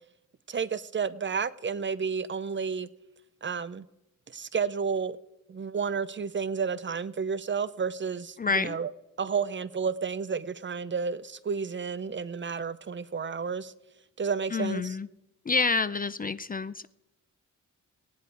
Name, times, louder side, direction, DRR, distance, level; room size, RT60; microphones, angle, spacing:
voice 1, 0.5-2.9 3.4-3.9 4.3-5.2 5.5-8.9 9.2-13.7 14.2-15.0, right 6 dB, 40° right, 0.5 m, -31 dB
voice 2, 8.4-8.8 14.5-15.1 15.5-16.9, left 4 dB, 30° left, 0.4 m, -28 dB
19.0 x 9.4 x 4.6 m
cardioid pair, 90°, 31 cm